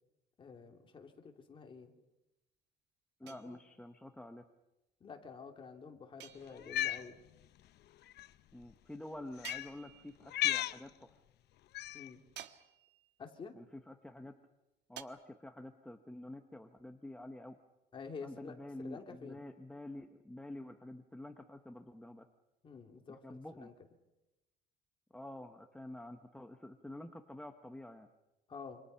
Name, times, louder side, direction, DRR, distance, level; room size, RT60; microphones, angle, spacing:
voice 1, 0.4-1.9 3.2-3.3 5.0-7.2 11.9-12.2 13.2-13.5 17.9-19.4 22.6-23.7 28.5-28.8, left 5 dB, 25° left, 3 dB, 3.0 m, -49 dB
voice 2, 3.2-4.4 8.5-11.1 13.5-14.3 14.9-17.6 18.2-22.3 23.1-23.7 25.1-28.1, left 1 dB, 5° left, 5 dB, 1.0 m, -48 dB
sound 1, 3.3-4.0 6.2-7.0 9.4-10.4 12.3-13.1 15.0-15.1, right 11 dB, 60° right, 1.4 m, -52 dB
Cat, 6.6-7.0 8.1-8.3 9.4-9.7 10.3-10.8 11.7-12.1, left 14 dB, 60° left, 0.9 m, -34 dB
28.0 x 26.5 x 5.7 m, 0.98 s
cardioid pair, 165°, 20 cm